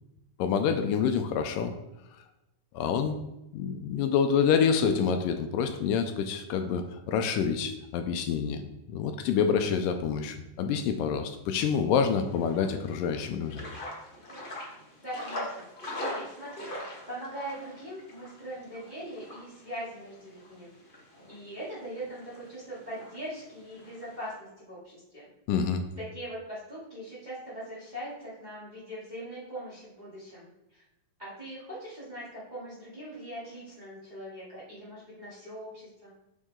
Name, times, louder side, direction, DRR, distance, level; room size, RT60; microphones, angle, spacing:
voice 1, 0.4-1.7 2.7-3.2 3.5-8.6 8.9-13.6 25.5-25.8, left 7 dB, 80° left, 6 dB, 2.2 m, -27 dB
sound 1, 12.1-24.3, left 1 dB, 40° left, 0.7 m, -43 dB
voice 2, 15.0-15.7 15.9-20.7 21.3-25.3 26.0-30.8 31.2-36.1, right 1 dB, 15° right, -9 dB, 2.4 m, -41 dB
7.2 x 6.7 x 3.7 m, 0.92 s
omnidirectional pair, 3.9 m